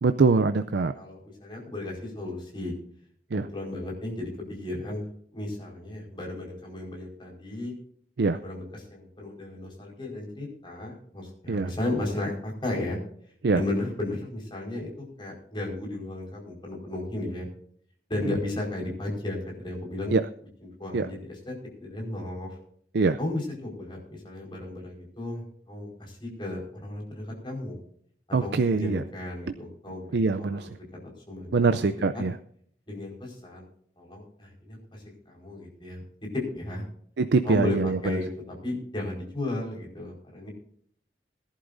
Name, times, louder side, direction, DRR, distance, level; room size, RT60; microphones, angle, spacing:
voice 1, 0.0-0.9 3.3-3.4 8.2-8.4 11.5-11.7 13.4-13.6 20.1-20.2 20.9-21.1 22.9-23.2 28.3-29.0 30.1-30.7 31.5-32.3 37.2-38.2, right 4 dB, 75° right, 10 dB, 0.5 m, -23 dB
voice 2, 0.9-2.7 3.3-5.0 5.3-7.7 8.3-13.0 13.5-17.5 18.1-20.2 20.6-22.6 23.2-27.8 28.4-30.7 31.3-31.9 32.1-32.2 32.9-33.6 34.0-36.0 36.3-36.8 37.4-40.5, left 2 dB, 30° left, -1 dB, 4.7 m, -34 dB
21.0 x 11.0 x 2.6 m, 0.62 s
head